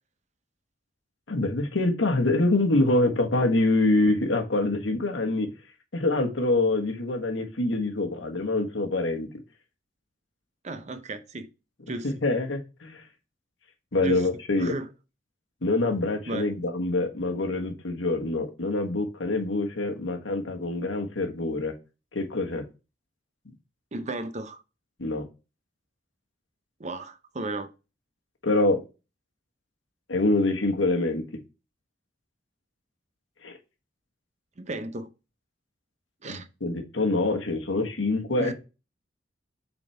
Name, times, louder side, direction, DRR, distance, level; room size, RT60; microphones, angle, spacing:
voice 1, 1.3-5.5 5.9-9.3 12.0-13.0 13.9-14.7 15.6-21.7 22.1-22.6 25.0-25.2 28.4-28.8 30.1-31.2 33.4-33.6 36.3-38.5, left 2 dB, 80° left, 1.4 m, -25 dB
voice 2, 10.6-11.5 11.9-12.1 14.0-14.3 14.6-14.9 16.3-16.5 23.9-24.6 26.8-27.7 34.6-35.1 36.2-36.5 38.4-38.5, right 2 dB, 40° right, 0.7 m, -34 dB
7.2 x 4.2 x 3.3 m
head